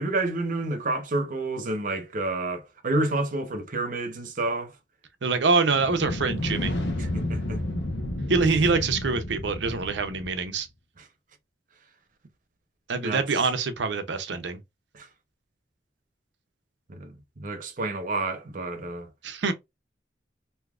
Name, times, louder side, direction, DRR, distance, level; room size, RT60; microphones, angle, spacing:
voice 1, 0.0-4.7 7.0-7.6 13.0-13.2 14.9-15.1 16.9-19.1, right 2 dB, 50° right, 0.8 m, -29 dB
voice 2, 5.2-6.7 8.3-10.7 12.9-14.6 19.2-19.5, right 4 dB, 85° right, 0.6 m, -25 dB
sound 1, 5.7-10.5, left 1 dB, 85° left, 0.8 m, -31 dB
3.4 x 2.7 x 2.4 m
head